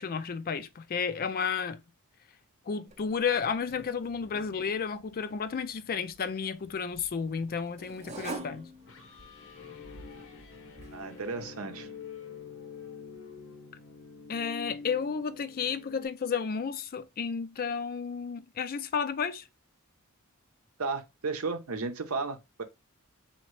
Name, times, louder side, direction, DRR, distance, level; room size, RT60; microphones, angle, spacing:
voice 1, 0.0-1.8 2.7-8.7 14.3-19.4, left 6 dB, 40° left, 0.4 m, -32 dB
sound 1, 2.9-11.5, right 2 dB, 30° right, 0.6 m, -48 dB
sound 2, 8.7-16.1, left 5 dB, 60° left, 0.8 m, -47 dB
voice 2, 10.9-11.9 20.8-22.6, right 4 dB, 70° right, 0.7 m, -34 dB
4.2 x 2.8 x 3.1 m
head